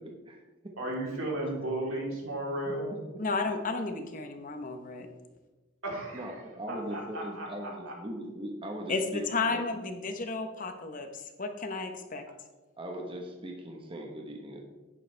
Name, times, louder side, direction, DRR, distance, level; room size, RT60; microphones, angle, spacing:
voice 1, 0.0-0.4 2.6-3.0 6.1-9.2 9.5-9.6 12.2-12.4 12.8-14.6, right 1 dB, 25° right, 1 dB, 1.1 m, -40 dB
voice 2, 0.8-2.9 5.8-6.3 6.7-7.9, right 1 dB, 85° right, -3 dB, 3.4 m, -34 dB
voice 3, 3.2-5.1 8.9-12.2, left 3 dB, 40° left, 6 dB, 0.9 m, -33 dB
11.0 x 9.7 x 3.3 m, 1.2 s
head